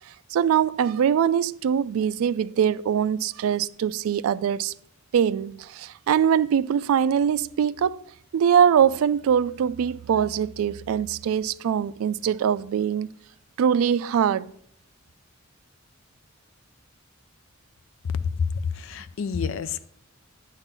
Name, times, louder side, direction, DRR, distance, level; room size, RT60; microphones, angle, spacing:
voice 1, 0.3-4.7 5.1-8.0 8.3-13.1 13.6-14.5, right 8 dB, 80° right, 0.3 m, -22 dB
voice 2, 18.2-19.9, left 6 dB, 65° left, 0.4 m, -28 dB
8.9 x 3.8 x 5.7 m
head